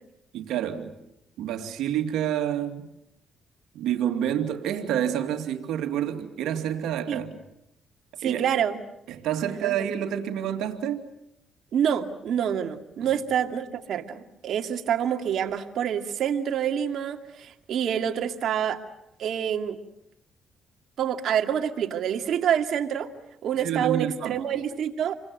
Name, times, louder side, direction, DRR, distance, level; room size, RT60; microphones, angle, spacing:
voice 1, 0.3-0.9 1.4-2.9 3.7-7.3 8.2-8.4 9.1-11.1 13.0-13.1 23.6-24.4, right 10 dB, 85° right, 2.6 m, -28 dB
voice 2, 8.2-8.8 9.4-9.7 11.7-18.8 19.2-19.8 21.0-23.1 23.4-25.1, right 9 dB, 70° right, 2.3 m, -27 dB
29.0 x 24.0 x 7.9 m
cardioid pair, 90°, 0 cm